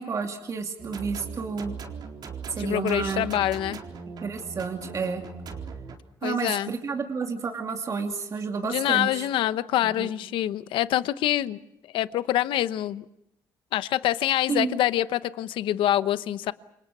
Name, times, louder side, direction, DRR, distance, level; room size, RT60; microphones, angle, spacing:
voice 1, 0.0-1.7 2.5-3.4 4.2-5.2 6.2-9.3 9.8-10.1 14.5-14.7, right 5 dB, 40° right, 3 dB, 2.7 m, -30 dB
sound 1, 0.8-6.0, right 5 dB, 55° right, 4.1 m, -39 dB
voice 2, 2.6-3.8 6.2-6.7 8.6-11.6 11.9-13.0 13.7-16.5, left 13 dB, 80° left, 14 dB, 0.9 m, -25 dB
28.5 x 25.0 x 6.1 m, 0.83 s
cardioid pair, 115°, 8 cm